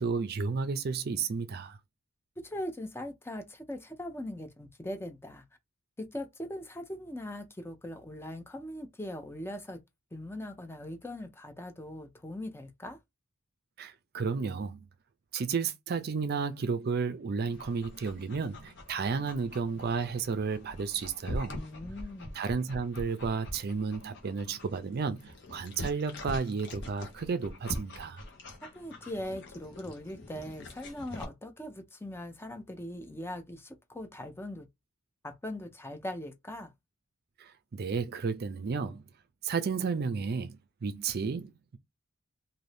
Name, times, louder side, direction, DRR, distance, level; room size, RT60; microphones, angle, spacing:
voice 1, 0.0-1.8 13.8-14.8 15.3-21.6 22.4-28.2 37.4-39.0 39.4-41.8, right 5 dB, 50° right, 0.4 m, -32 dB
voice 2, 2.4-5.4 6.0-9.8 10.1-13.0 21.5-22.4 28.6-34.7 35.2-36.7, left 1 dB, 10° left, 0.5 m, -40 dB
Dog, 17.4-31.2, left 1 dB, 60° left, 1.0 m, -44 dB
2.6 x 2.6 x 3.3 m
head